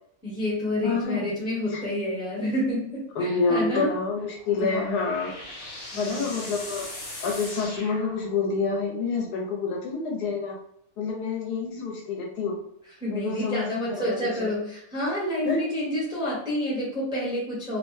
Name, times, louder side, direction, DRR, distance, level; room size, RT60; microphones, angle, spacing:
voice 1, 0.2-3.9 4.5-4.8 5.9-6.4 13.0-17.8, left 1 dB, 5° right, -7 dB, 0.8 m, -29 dB
voice 2, 0.8-1.3 1.7-1.8 3.1-5.3 6.0-6.9 7.2-10.6 11.0-12.6 13.1-14.5 15.4-15.6, left 4 dB, 85° left, 0 dB, 1.3 m, -28 dB
sound 1, 4.2-8.7, left 1 dB, 60° left, 1.2 m, -40 dB
2.9 x 2.1 x 3.1 m, 0.74 s
omnidirectional pair, 1.6 m